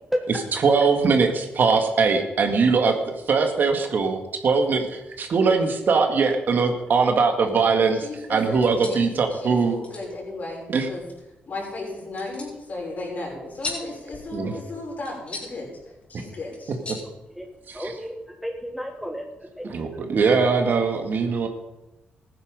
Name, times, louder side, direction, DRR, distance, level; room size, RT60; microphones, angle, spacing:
voice 1, 0.6-3.0 3.3-9.8 10.7-10.9 14.3-14.5 17.7-17.9 19.7-21.5, right 4 dB, 60° right, 5 dB, 1.9 m, -21 dB
voice 2, 8.0-11.0 11.5-15.7 16.1-16.7, left 2 dB, 50° left, -2 dB, 6.1 m, -35 dB
sound 1, 8.5-17.9, left 2 dB, 35° left, 4.9 m, -41 dB
voice 3, 17.7-20.1, equal, ahead, 3 dB, 1.6 m, -32 dB
15.0 x 10.0 x 5.3 m, 0.98 s
cardioid pair, 75°, 4 cm